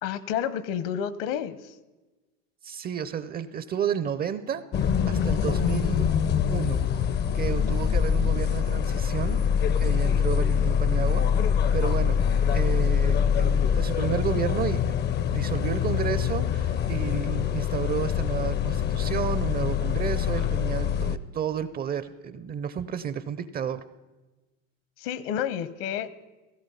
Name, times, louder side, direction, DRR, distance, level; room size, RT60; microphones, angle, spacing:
voice 1, 0.0-1.8 25.0-26.1, left 9 dB, 55° left, 17 dB, 1.0 m, -30 dB
voice 2, 2.6-6.1 6.5-6.8 7.3-9.4 9.8-12.2 12.5-15.0 15.3-23.8, right 8 dB, 25° right, 14 dB, 0.5 m, -32 dB
sound 1, 4.7-21.2, left 8 dB, 25° left, 0.5 m, -24 dB
17.0 x 15.0 x 5.6 m, 1.2 s
supercardioid pair, 120°, 39 cm